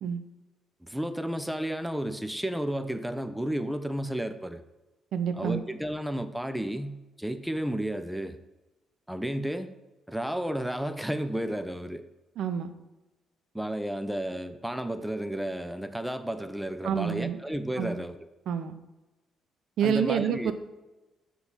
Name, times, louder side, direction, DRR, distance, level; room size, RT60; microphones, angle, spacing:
voice 1, 0.8-4.6 5.3-8.4 9.1-9.7 10.1-12.1 13.5-18.2 19.8-20.5, right 1 dB, 5° right, 10 dB, 0.5 m, -32 dB
voice 2, 5.1-5.6 12.4-12.7 16.8-17.4 17.8-18.0 18.5-18.8 19.8-20.5, right 8 dB, 55° right, 10 dB, 0.5 m, -28 dB
5.7 x 3.7 x 5.7 m, 1.1 s
figure-of-eight pair, 45°, 0 cm